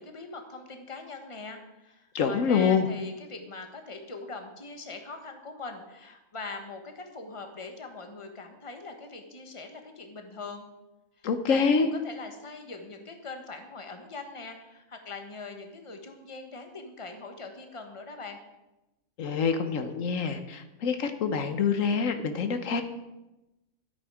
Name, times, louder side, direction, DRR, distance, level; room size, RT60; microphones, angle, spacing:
voice 1, 0.0-10.7 11.2-18.4, left 3 dB, 25° left, 5 dB, 1.3 m, -42 dB
voice 2, 2.1-2.8 11.2-11.9 19.2-22.8, left 6 dB, 75° left, 8 dB, 1.2 m, -26 dB
13.0 x 8.7 x 4.9 m, 0.99 s
omnidirectional pair, 1.4 m